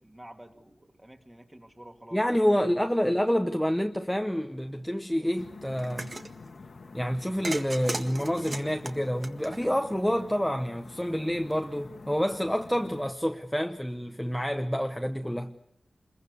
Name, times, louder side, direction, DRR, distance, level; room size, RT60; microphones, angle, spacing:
voice 1, 0.0-2.2, right 1 dB, 15° right, 2.2 m, -49 dB
voice 2, 2.1-6.1 6.9-15.5, equal, 5° left, 0.9 m, -28 dB
sound 1, 5.4-13.1, left 3 dB, 65° left, 1.7 m, -47 dB
sound 2, 5.8-6.3 7.4-9.9, right 2 dB, 40° right, 1.7 m, -36 dB
27.5 x 22.0 x 6.7 m
wide cardioid pair, 105°, 0 cm